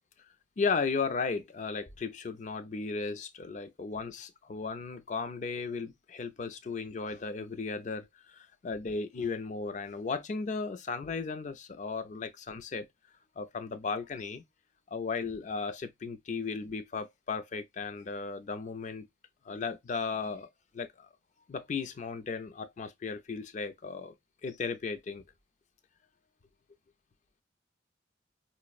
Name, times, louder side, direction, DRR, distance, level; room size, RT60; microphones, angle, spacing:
voice 1, 0.6-12.9 13.4-14.4 14.9-19.1 19.5-20.5 20.7-21.1 21.5-24.1 24.4-25.2, left 4 dB, 40° left, 0.4 m, -35 dB
4.7 x 2.1 x 2.3 m
head